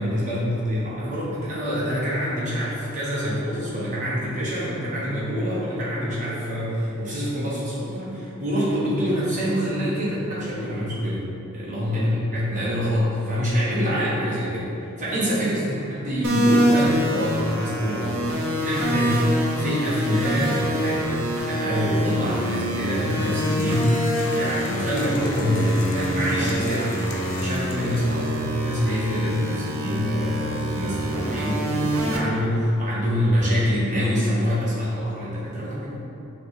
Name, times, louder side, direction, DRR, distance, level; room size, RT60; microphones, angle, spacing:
voice 1, 0.0-11.2 11.5-14.7 15.0-18.3 18.6-21.2 21.4-36.0, equal, 35° right, -8 dB, 1.1 m, -25 dB
sound 1, 16.2-32.2, equal, 80° right, 0.5 m, -26 dB
sound 2, 23.4-28.5, left 4 dB, 60° left, 0.3 m, -38 dB
6.0 x 2.2 x 3.2 m, 2.8 s
head